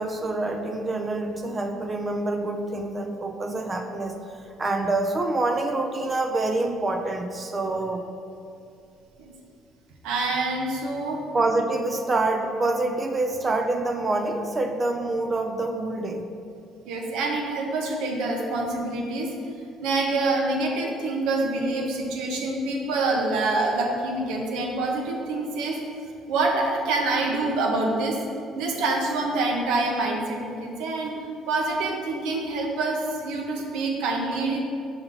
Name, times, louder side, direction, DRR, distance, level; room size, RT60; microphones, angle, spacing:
voice 1, 0.0-4.2 4.6-8.0 11.3-16.3, right 2 dB, 20° right, 5 dB, 0.4 m, -26 dB
voice 2, 10.0-11.2 16.9-19.3 19.8-25.8 26.3-28.2 28.6-31.1 31.5-34.6, right 2 dB, 85° right, 1 dB, 0.9 m, -26 dB
5.6 x 3.9 x 5.6 m, 2.5 s
cardioid pair, 140°, 0 cm